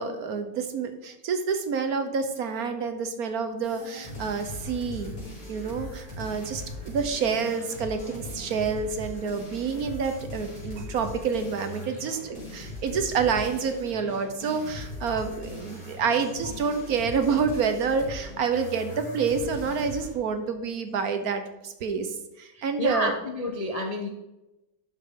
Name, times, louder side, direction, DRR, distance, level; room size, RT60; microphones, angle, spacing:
voice 1, 0.0-5.1 5.5-22.1 22.4-23.1, right 5 dB, 65° right, 8 dB, 1.3 m, -28 dB
sound 1, 3.6-20.2, left 1 dB, 55° left, 3.7 m, -40 dB
voice 2, 22.8-24.1, left 1 dB, 40° left, 2 dB, 0.5 m, -29 dB
11.5 x 6.3 x 3.7 m, 0.97 s
omnidirectional pair, 1.9 m